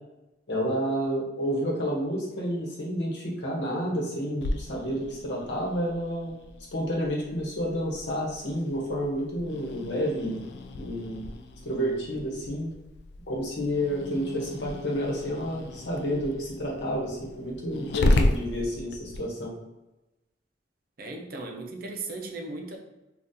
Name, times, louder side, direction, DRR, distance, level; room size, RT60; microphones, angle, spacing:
voice 1, 0.5-6.3 6.7-10.4 10.8-11.2 11.6-12.7 13.3-19.5, equal, 90° left, -3 dB, 1.0 m, -30 dB
Growling, 4.4-19.2, left 2 dB, 65° left, 0.3 m, -33 dB
voice 2, 21.0-22.8, right 3 dB, 55° right, 3 dB, 0.5 m, -37 dB
2.7 x 2.3 x 3.6 m, 1.0 s
head